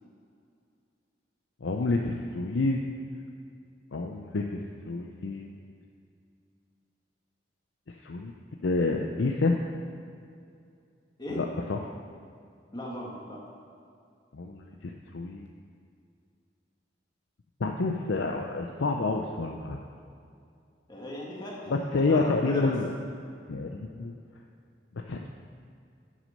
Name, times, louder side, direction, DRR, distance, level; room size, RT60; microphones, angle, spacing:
voice 1, 1.6-2.8 3.9-5.5 8.0-8.3 8.6-9.6 11.3-11.9 14.3-15.5 17.6-19.8 21.7-22.9 23.5-24.1 25.1-25.3, left 3 dB, 80° left, 2 dB, 0.6 m, -28 dB
voice 2, 12.7-13.4 20.9-22.8, left 1 dB, 25° left, -4 dB, 1.9 m, -37 dB
9.5 x 6.2 x 6.6 m, 2.4 s
head